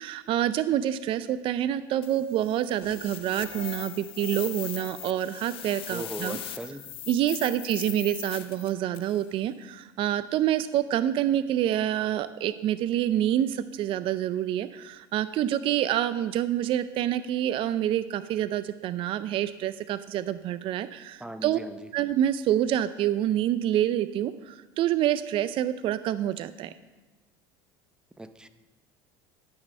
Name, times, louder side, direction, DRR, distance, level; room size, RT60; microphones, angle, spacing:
voice 1, 0.0-6.4 7.1-21.6 21.9-26.7, right 11 dB, 50° right, 13 dB, 0.4 m, -27 dB
sound 1, 2.0-9.2, left 12 dB, 50° left, 0.8 m, -40 dB
voice 2, 5.9-6.8 21.2-21.9 28.2-28.5, right 1 dB, 5° right, 10 dB, 0.7 m, -38 dB
12.5 x 6.1 x 5.4 m, 1.2 s
supercardioid pair, 105°, 12 cm